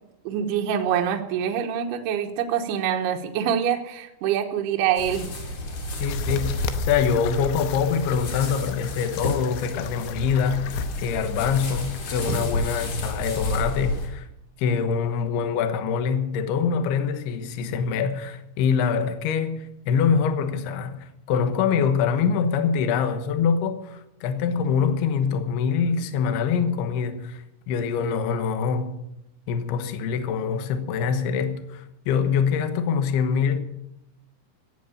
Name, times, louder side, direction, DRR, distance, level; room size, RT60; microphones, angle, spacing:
voice 1, 0.2-5.3, right 9 dB, 70° right, 2.6 m, -25 dB
sound 1, 5.0-14.1, left 1 dB, 45° left, 3.8 m, -30 dB
sound 2, 5.9-12.5, left 11 dB, 85° left, 3.5 m, -38 dB
voice 2, 6.0-14.3 14.6-29.0 29.5-33.6, left 6 dB, 70° left, 2.6 m, -24 dB
15.5 x 8.3 x 8.8 m
omnidirectional pair, 5.9 m